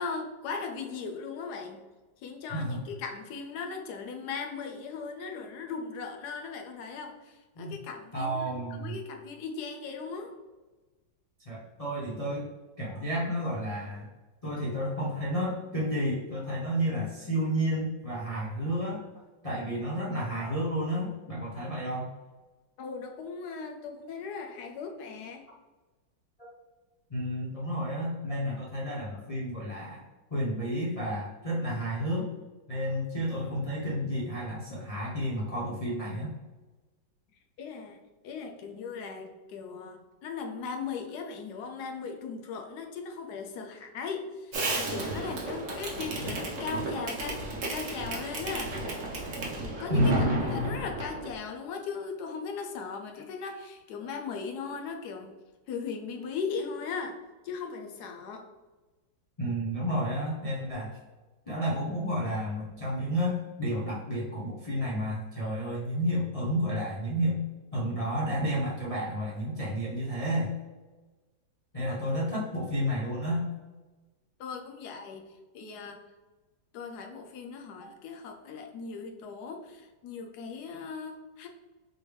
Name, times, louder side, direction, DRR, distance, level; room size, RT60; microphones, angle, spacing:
voice 1, 0.0-1.8 2.2-10.3 22.8-25.4 37.6-38.0 38.2-48.8 49.8-55.3 55.7-57.2 57.4-58.5 71.8-72.0 74.4-76.0 76.7-81.5, left 5 dB, 70° left, 3 dB, 1.0 m, -38 dB
voice 2, 2.5-2.8 7.5-7.7 8.1-9.0 11.4-12.4 12.8-14.1 14.4-19.0 19.4-22.1 26.4-26.5 27.1-30.0 30.3-32.2 32.7-36.3 49.9-50.8 59.4-61.0 61.5-67.4 67.7-70.5 71.7-73.4, equal, 55° left, -7 dB, 0.4 m, -31 dB
Fireworks, 44.5-51.3, right 2 dB, 55° right, 1.0 m, -33 dB
4.3 x 3.3 x 3.2 m, 1.2 s
omnidirectional pair, 2.0 m